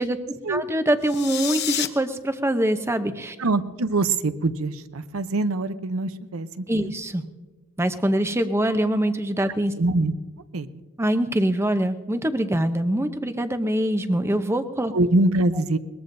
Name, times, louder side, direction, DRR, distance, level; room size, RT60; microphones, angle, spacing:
voice 1, 0.0-3.4 6.7-7.2 7.8-9.7 11.0-14.9, right 1 dB, 10° right, 9 dB, 0.7 m, -24 dB
sound 1, 1.0-1.9, left 10 dB, 50° left, 0.8 m, -28 dB
voice 2, 3.4-6.9 9.8-10.1 10.5-10.7 14.9-15.8, right 2 dB, 90° right, 12 dB, 0.7 m, -24 dB
21.5 x 20.0 x 2.6 m, 1.3 s
head